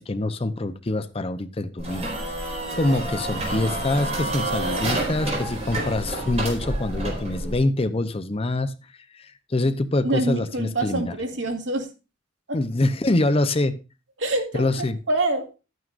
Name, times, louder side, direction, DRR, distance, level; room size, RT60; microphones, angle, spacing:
voice 1, 0.0-2.1 2.5-8.7 9.5-11.1 12.5-13.8 14.5-15.0, left 2 dB, 30° left, 0.7 m, -25 dB
sound 1, 1.8-7.6, right 1 dB, 35° right, 4.0 m, -28 dB
voice 2, 10.0-11.9 12.5-12.6 14.2-15.5, right 2 dB, 75° right, 2.4 m, -26 dB
12.5 x 9.3 x 2.5 m
head